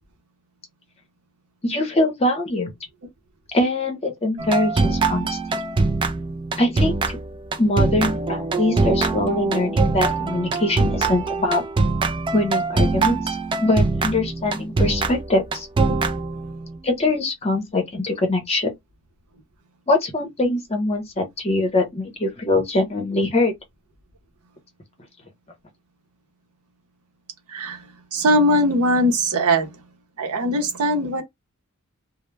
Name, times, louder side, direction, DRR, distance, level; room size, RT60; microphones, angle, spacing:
voice 1, 1.6-2.7 3.5-5.6 6.6-7.2 7.6-11.6 12.3-15.7 16.8-18.7 19.9-23.5, left 2 dB, 30° left, 0.8 m, -23 dB
sound 1, 4.4-16.7, right 3 dB, 25° right, 0.3 m, -23 dB
voice 2, 27.5-27.8 28.1-29.8 30.2-31.2, equal, 80° right, 0.7 m, -20 dB
2.2 x 2.1 x 3.1 m
head